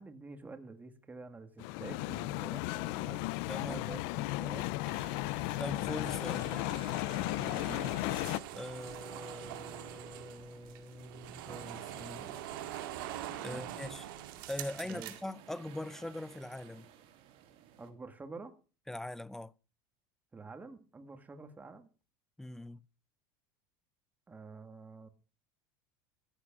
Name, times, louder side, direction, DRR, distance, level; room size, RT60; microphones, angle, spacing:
voice 1, 0.0-3.2 3.6-4.7 7.3-7.9 13.5-13.7 14.9-15.1 17.8-18.5 20.3-21.9 24.3-25.1, right 3 dB, 15° right, 2.0 m, -48 dB
sound 1, 1.6-8.4, left 20 dB, 65° left, 0.6 m, -35 dB
voice 2, 3.5-4.0 5.6-6.7 8.5-12.4 13.4-14.1 14.5-16.9 18.9-19.5 22.4-22.8, left 1 dB, 5° left, 0.6 m, -42 dB
sound 2, 4.8-17.9, right 10 dB, 60° right, 3.1 m, -58 dB
sound 3, 6.0-15.2, right 12 dB, 80° right, 2.1 m, -44 dB
14.5 x 8.0 x 6.2 m
supercardioid pair, 125°, 11 cm